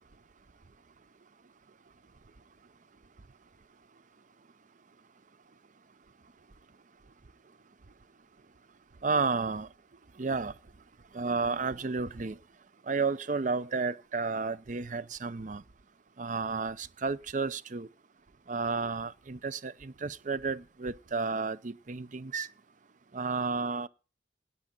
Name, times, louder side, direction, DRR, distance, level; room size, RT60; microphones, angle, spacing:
voice 1, 9.0-9.7 10.2-10.5 11.1-12.4 12.9-15.6 16.2-17.9 18.5-22.5 23.1-23.9, right 4 dB, 45° right, 0.6 m, -32 dB
17.5 x 9.8 x 3.8 m
head